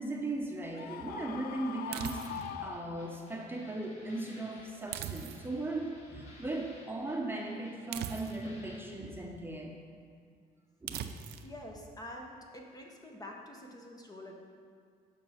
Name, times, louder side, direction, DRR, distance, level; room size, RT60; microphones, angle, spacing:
voice 1, 0.0-9.7 10.8-11.1, right 2 dB, 15° right, -1 dB, 0.9 m, -38 dB
Screaming, 0.8-3.4, left 9 dB, 65° left, 0.4 m, -42 dB
sound 1, 1.9-2.6 4.9-5.7 7.9-8.6 10.9-11.5, right 10 dB, 75° right, 0.5 m, -40 dB
sound 2, 2.0-8.8, left 2 dB, 40° left, 1.7 m, -57 dB
voice 2, 11.4-14.4, left 1 dB, 20° left, 0 dB, 1.0 m, -47 dB
7.5 x 5.4 x 5.7 m, 2.1 s
cardioid pair, 110°, 17 cm